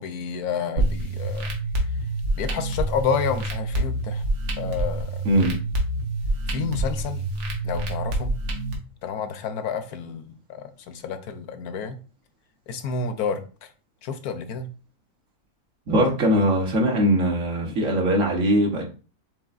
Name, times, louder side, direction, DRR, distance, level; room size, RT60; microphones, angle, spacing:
voice 1, 0.0-1.5 2.4-4.2 4.6-5.2 6.5-7.2 7.6-8.3 9.0-12.0 12.7-13.4 14.0-14.7, left 6 dB, 80° left, 1.2 m, -29 dB
sound 1, 0.8-8.7, right 1 dB, 80° right, 1.6 m, -27 dB
voice 2, 15.9-18.8, equal, 60° right, 1.5 m, -21 dB
7.0 x 3.1 x 2.5 m
omnidirectional pair, 1.6 m